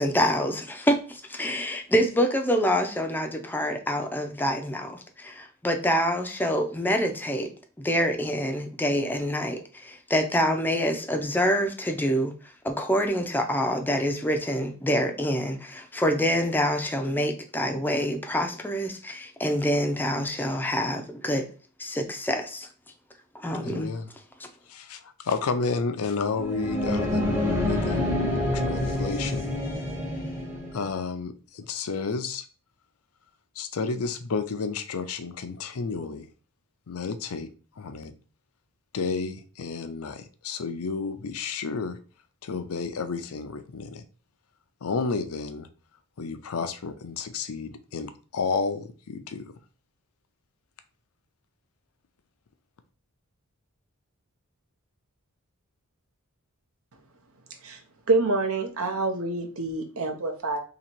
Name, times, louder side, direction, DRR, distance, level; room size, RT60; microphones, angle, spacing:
voice 1, 0.0-7.5 7.8-12.3 12.6-21.5 21.8-22.7 23.3-23.9, equal, 10° left, 0.5 m, -26 dB
voice 2, 23.5-24.1 24.7-28.2 28.5-29.6 30.7-32.4 33.6-36.3 36.9-37.5 37.8-38.1 38.9-42.0 42.4-44.0 44.8-45.7 46.2-49.4, left 4 dB, 70° left, 0.5 m, -31 dB
sound 1, 26.3-30.9, left 1 dB, 10° right, 0.9 m, -27 dB
voice 3, 58.1-60.6, right 3 dB, 70° right, 0.8 m, -26 dB
2.9 x 2.9 x 4.3 m
head